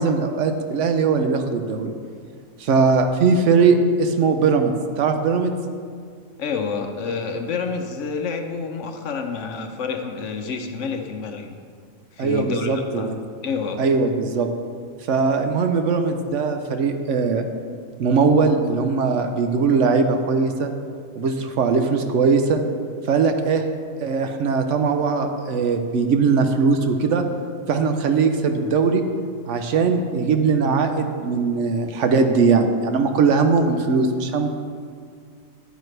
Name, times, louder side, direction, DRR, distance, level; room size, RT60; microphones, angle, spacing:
voice 1, 0.0-1.9 2.6-4.7 5.0-5.5 12.2-13.2 13.8-14.5 15.1-17.5 18.0-20.7 21.2-22.6 23.1-23.6 24.0-27.2 27.7-29.0 29.5-34.5, right 4 dB, 65° right, 6 dB, 0.9 m, -20 dB
voice 2, 6.4-11.6 12.1-13.1 13.4-13.8, left 5 dB, 65° left, 5 dB, 1.0 m, -28 dB
10.5 x 8.9 x 3.2 m, 2.1 s
omnidirectional pair, 1.4 m